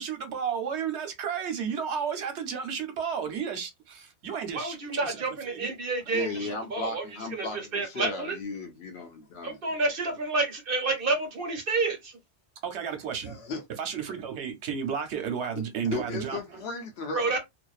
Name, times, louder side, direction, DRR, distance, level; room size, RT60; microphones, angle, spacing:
voice 1, 0.0-5.2 5.5-5.7 6.1-6.6 12.6-13.4 13.8-16.6, right 7 dB, 85° right, 1.0 m, -33 dB
voice 2, 4.5-7.0 7.3-7.5 7.7-8.4 9.4-12.1 17.1-17.4, right 3 dB, 55° right, 1.0 m, -29 dB
voice 3, 6.1-9.6 13.2-13.6 15.8-17.4, left 4 dB, 75° left, 0.8 m, -36 dB
2.6 x 2.1 x 2.3 m
omnidirectional pair, 1.1 m